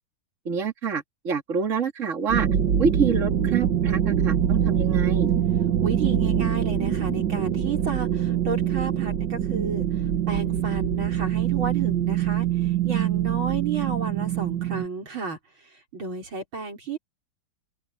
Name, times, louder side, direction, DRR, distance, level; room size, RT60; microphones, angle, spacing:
voice 1, 0.4-2.5 2.8-5.3, right 5 dB, 40° right, 2.7 m, -27 dB
sound 1, 2.3-14.9, right 9 dB, 65° right, 2.0 m, -24 dB
voice 2, 5.8-9.9 10.3-15.4 15.9-17.0, right 5 dB, 80° right, 5.5 m, -32 dB
open air
omnidirectional pair, 2.2 m